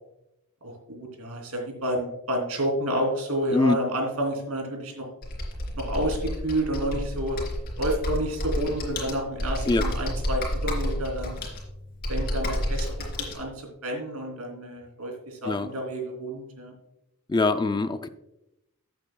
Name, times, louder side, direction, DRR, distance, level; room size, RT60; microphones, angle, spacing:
voice 1, 0.6-5.0 5.7-7.4 7.8-11.4 12.1-16.7, right 1 dB, 75° right, 2 dB, 3.0 m, -30 dB
Computer keyboard, 5.2-13.4, left 1 dB, 45° left, 3.3 m, -30 dB
voice 2, 17.3-18.1, left 3 dB, 20° left, 10 dB, 0.3 m, -23 dB
15.0 x 8.3 x 2.3 m, 0.89 s
head